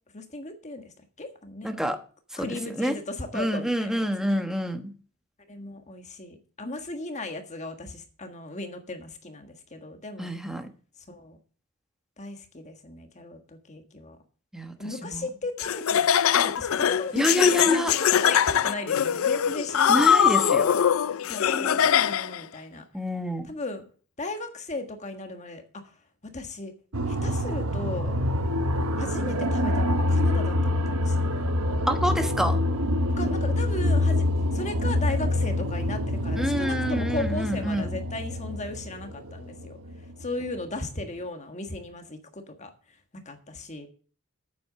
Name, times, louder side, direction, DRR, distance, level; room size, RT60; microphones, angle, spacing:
voice 1, 0.1-0.9 1.2-1.7 2.4-4.4 5.5-10.3 11.1-11.4 12.2-14.2 14.8-20.1 20.4-20.6 21.3-22.8 23.4-23.8 24.2-25.6 26.3-26.7 27.1-28.2 29.0-31.5 33.2-34.2 34.5-39.8 40.2-42.7 43.2-43.9, left 2 dB, 30° left, 6 dB, 1.6 m, -36 dB
voice 2, 1.6-2.0 2.3-3.0 3.3-4.9 10.2-10.7 14.5-15.3 17.1-17.9 19.9-20.7 22.9-23.5 31.9-32.6 36.4-38.0, equal, ahead, 7 dB, 1.1 m, -27 dB
Laughter, 15.6-22.4, left 8 dB, 65° left, 0.4 m, -22 dB
sound 1, 26.9-40.6, left 1 dB, 75° right, 1.2 m, -26 dB
9.2 x 7.9 x 6.7 m, 0.41 s
head